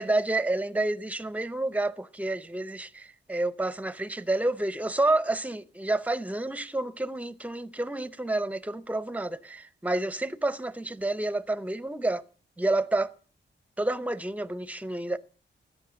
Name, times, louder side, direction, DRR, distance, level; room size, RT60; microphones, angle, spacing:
voice 1, 0.0-12.2 12.6-13.1 13.8-15.2, right 2 dB, 5° right, 0.7 m, -29 dB
13.5 x 9.9 x 8.5 m
wide cardioid pair, 115°, 19 cm